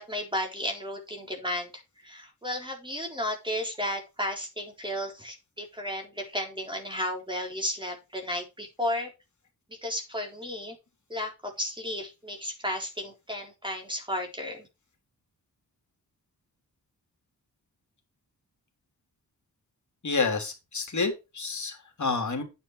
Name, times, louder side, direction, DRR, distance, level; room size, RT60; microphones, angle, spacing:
voice 1, 0.0-9.1 9.7-10.8 11.1-14.7, left 1 dB, 15° right, 2 dB, 3.8 m, -33 dB
voice 2, 20.0-22.4, left 4 dB, 50° left, 3 dB, 3.4 m, -29 dB
9.6 x 9.0 x 3.3 m, 0.26 s
wide cardioid pair, 110°, 37 cm